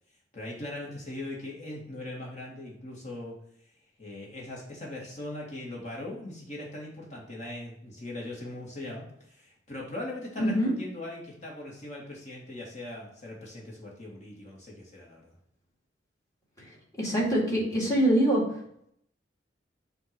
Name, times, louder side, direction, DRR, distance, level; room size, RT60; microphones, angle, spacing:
voice 1, 0.3-3.4 4.0-15.3, left 1 dB, 40° left, -3 dB, 1.8 m, -40 dB
voice 2, 10.4-10.7 17.0-18.4, right 1 dB, 20° left, -5 dB, 2.2 m, -24 dB
7.9 x 2.8 x 5.9 m, 0.71 s
head